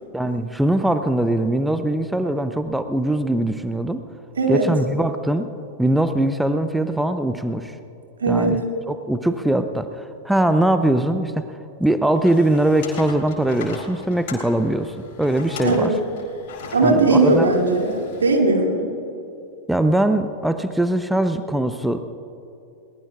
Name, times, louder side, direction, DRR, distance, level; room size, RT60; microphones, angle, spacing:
voice 1, 0.1-4.0 4.5-5.5 5.8-7.8 8.3-8.6 8.9-11.5 11.8-15.9 16.8-17.5 19.7-22.0, right 1 dB, 5° right, 9 dB, 0.6 m, -21 dB
voice 2, 4.4-4.7 8.2-8.6 15.6-15.9 16.7-18.9, right 3 dB, 70° right, 1 dB, 2.4 m, -18 dB
sound 1, 12.1-18.3, left 5 dB, 50° left, 3.4 m, -39 dB
22.0 x 19.0 x 2.4 m, 2.8 s
figure-of-eight pair, 90°, 0 cm